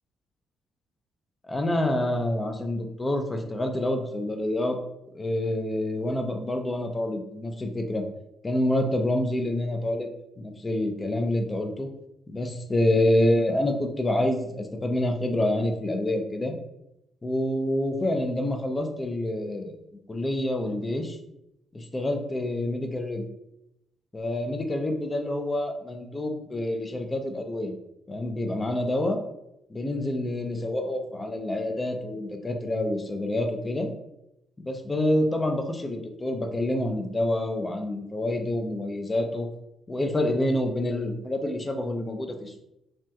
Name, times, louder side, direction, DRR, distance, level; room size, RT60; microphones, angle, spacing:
voice 1, 1.5-4.8 5.1-8.0 8.4-10.1 10.4-11.9 12.3-16.5 17.2-19.8 20.1-21.2 21.7-23.3 24.1-27.7 28.1-29.2 29.7-33.9 34.6-39.5 39.9-42.6, left 1 dB, 20° left, 4 dB, 0.4 m, -27 dB
3.3 x 2.3 x 2.7 m, 0.82 s
cardioid pair, 90°, 0 cm